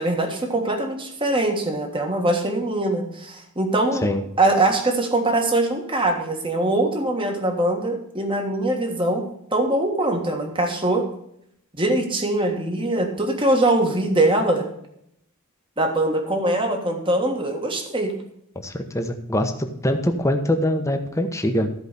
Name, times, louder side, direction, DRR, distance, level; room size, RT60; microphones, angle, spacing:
voice 1, 0.0-4.0 4.4-9.2 9.5-11.0 11.8-14.7 15.8-18.1, right 1 dB, 25° right, 3 dB, 1.6 m, -22 dB
voice 2, 18.5-21.7, left 1 dB, 15° left, 6 dB, 1.0 m, -23 dB
14.0 x 5.0 x 6.8 m, 0.75 s
head